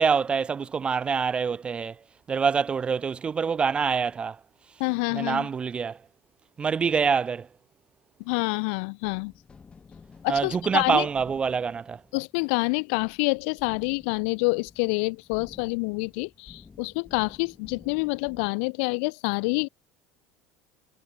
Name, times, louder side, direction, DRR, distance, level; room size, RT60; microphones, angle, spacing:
voice 1, 0.0-2.0 2.3-4.4 5.1-6.0 6.6-7.5 10.3-12.0, right 6 dB, 15° right, 0.3 m, -25 dB
voice 2, 4.8-5.5 8.2-9.3 10.2-11.1 12.1-19.7, left 34 dB, 70° left, 0.8 m, -27 dB
sound 1, 9.0-18.5, left 5 dB, 15° left, 3.1 m, -52 dB
cardioid pair, 160°, 6 cm